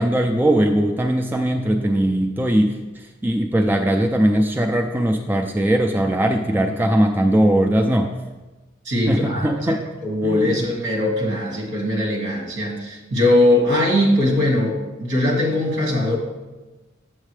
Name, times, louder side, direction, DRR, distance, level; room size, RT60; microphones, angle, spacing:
voice 1, 0.0-8.1 9.1-9.8 10.2-10.5, right 1 dB, 10° right, 3 dB, 0.3 m, -20 dB
voice 2, 8.8-9.5 10.0-16.2, left 1 dB, 70° right, -1 dB, 2.1 m, -20 dB
8.2 x 7.2 x 3.3 m, 1.2 s
head